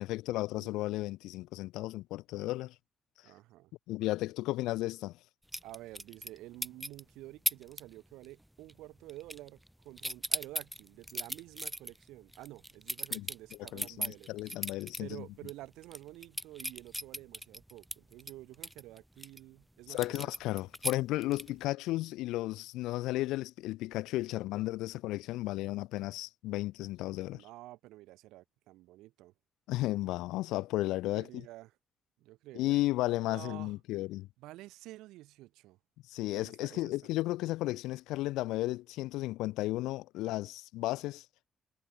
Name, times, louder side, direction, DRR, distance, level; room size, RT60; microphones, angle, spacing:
voice 1, 0.0-2.7 3.9-5.2 13.1-13.3 13.6-15.3 19.9-27.4 29.7-31.3 32.5-34.3 36.1-41.3, left 17 dB, 85° left, 2.0 m, -34 dB
voice 2, 3.2-3.7 5.6-14.5 15.0-20.3 21.5-21.6 27.2-29.3 30.9-31.7 32.2-32.8 33.3-33.8 34.4-35.8 36.3-36.9, right 17 dB, 85° right, 5.3 m, -50 dB
sound 1, 5.5-6.4 6.6-7.0 7.5-7.8 8.1-8.4 8.7-9.7 10.0-15.0 15.4-15.5 15.8-19.4 20.0-21.6, right 1 dB, 5° right, 2.5 m, -37 dB
supercardioid pair, 65°, 0 cm